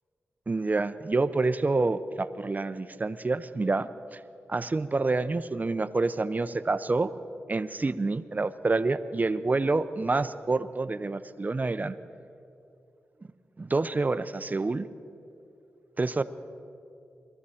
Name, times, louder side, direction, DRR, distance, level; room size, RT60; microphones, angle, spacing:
voice 1, 0.5-4.2 4.5-7.1 7.5-12.0 13.6-14.9 16.0-16.2, right 3 dB, 35° right, 13 dB, 0.6 m, -27 dB
21.5 x 13.5 x 4.2 m, 2.6 s
cardioid pair, 60°, 5 cm